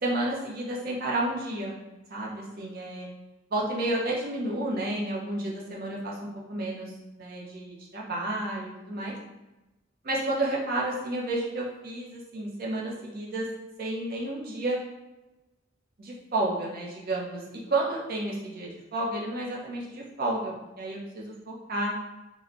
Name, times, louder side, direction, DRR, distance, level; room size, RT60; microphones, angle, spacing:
voice 1, 0.0-1.8 2.1-3.1 3.5-9.1 10.0-13.5 13.8-14.8 16.0-21.9, right 2 dB, 50° right, -3 dB, 0.6 m, -31 dB
3.5 x 2.1 x 2.4 m, 1.0 s
head